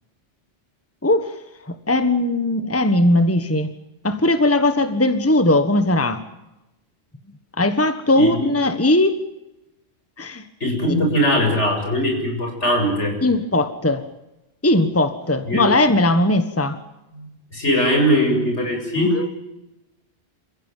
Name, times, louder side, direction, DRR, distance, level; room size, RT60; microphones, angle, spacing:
voice 1, 1.0-1.3 1.7-3.7 4.0-6.2 7.6-9.1 10.2-10.4 10.8-11.0 13.2-14.0 14.6-16.8 19.0-19.3, left 1 dB, 10° left, 10 dB, 1.4 m, -19 dB
voice 2, 8.1-8.5 10.6-13.1 15.5-15.7 17.1-17.3 17.5-19.2, equal, 70° left, 2 dB, 7.9 m, -20 dB
28.5 x 16.0 x 9.2 m, 0.94 s
omnidirectional pair, 1.2 m